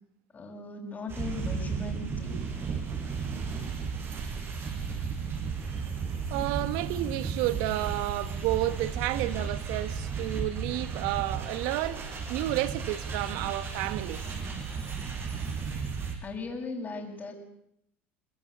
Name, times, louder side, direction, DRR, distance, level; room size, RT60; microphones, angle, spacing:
voice 1, 0.3-2.4 16.2-17.4, left 3 dB, 25° left, 6.4 m, -38 dB
sound 1, 1.1-16.2, right 5 dB, 40° right, 7.5 m, -34 dB
voice 2, 6.3-14.3, right 15 dB, 70° right, 1.8 m, -31 dB
24.5 x 21.5 x 8.2 m
hypercardioid pair, 90°, 6 cm